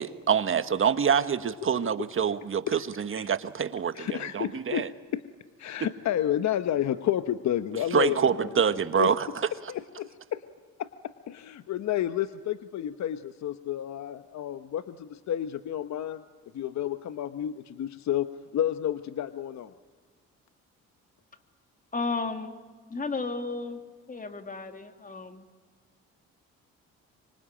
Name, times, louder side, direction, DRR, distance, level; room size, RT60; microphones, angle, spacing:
voice 1, 0.0-4.9 5.8-5.9 7.9-9.3, right 7 dB, 45° right, 11 dB, 1.5 m, -26 dB
voice 2, 3.9-4.8 5.1-5.2 5.6-9.1 9.7-10.4 10.8-16.2 16.5-19.7, left 11 dB, 65° left, 11 dB, 1.0 m, -31 dB
voice 3, 21.9-22.5 22.9-23.8 24.1-25.5, left 3 dB, 25° left, 7 dB, 2.7 m, -33 dB
25.5 x 25.0 x 8.9 m, 1.5 s
cardioid pair, 90°, 30 cm